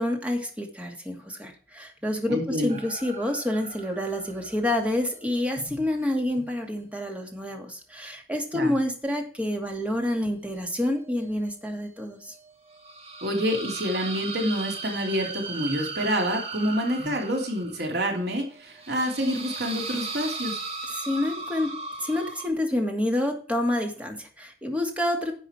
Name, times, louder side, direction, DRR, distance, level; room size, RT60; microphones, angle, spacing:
voice 1, 0.0-12.4 17.0-17.1 20.9-21.7 22.0-25.3, left 1 dB, 10° right, 2 dB, 2.4 m, -28 dB
voice 2, 2.3-2.8 8.5-8.7 13.2-20.6, equal, 70° right, 1 dB, 3.0 m, -27 dB
sound 1, 2.7-6.2 6.5-6.6 10.1-10.6 11.0-22.5, right 4 dB, 35° right, 2.2 m, -38 dB
11.0 x 8.0 x 4.5 m, 0.43 s
head